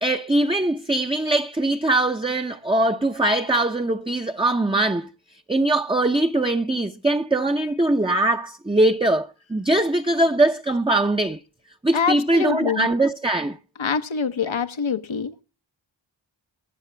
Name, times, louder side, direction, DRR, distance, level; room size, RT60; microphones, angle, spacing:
voice 1, 0.0-5.1 5.5-11.4 11.8-13.6, right 2 dB, 10° right, 0.7 m, -21 dB
voice 2, 11.9-12.9 13.8-15.4, left 6 dB, 80° left, 1.2 m, -25 dB
22.0 x 8.4 x 3.4 m
wide cardioid pair, 75°, 46 cm